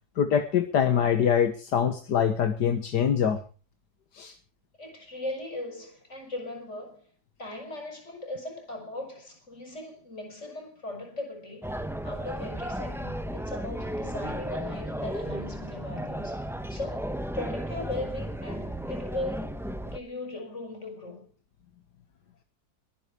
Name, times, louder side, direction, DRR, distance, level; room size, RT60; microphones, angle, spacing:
voice 1, 0.2-3.4 4.1-4.3, left 8 dB, 80° left, 1.9 m, -24 dB
voice 2, 4.8-7.0 7.4-11.8 12.0-16.4 16.7-19.6 19.8-21.3, left 2 dB, 40° left, 5.9 m, -38 dB
sound 1, 11.6-20.0, right 1 dB, ahead, 0.7 m, -34 dB
22.5 x 10.0 x 4.9 m
omnidirectional pair, 1.8 m